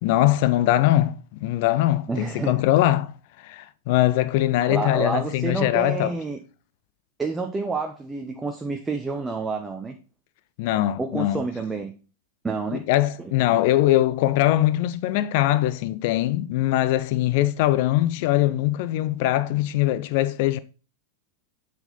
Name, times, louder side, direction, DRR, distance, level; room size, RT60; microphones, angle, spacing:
voice 1, 0.0-3.1 3.4-6.1 10.6-11.4 12.9-20.6, left 14 dB, 50° left, 0.4 m, -22 dB
voice 2, 2.1-2.6 4.7-6.4 7.2-9.9 11.0-11.9 12.4-12.9 13.2-13.3, right 3 dB, 10° right, 0.7 m, -29 dB
7.8 x 4.4 x 3.8 m
figure-of-eight pair, 90°, 0 cm